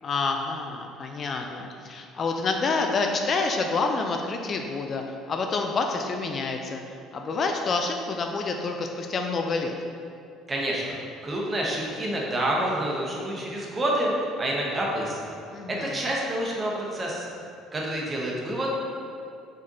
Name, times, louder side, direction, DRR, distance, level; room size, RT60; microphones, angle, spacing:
voice 1, 0.0-5.0 5.3-6.8 7.1-9.7 15.5-16.0, left 4 dB, 45° left, 3 dB, 0.4 m, -28 dB
voice 2, 10.5-11.0 11.2-15.3 15.7-17.4 17.7-18.7, right 1 dB, 30° right, -3 dB, 1.0 m, -28 dB
4.5 x 4.2 x 2.7 m, 2.5 s
hypercardioid pair, 55°, 0 cm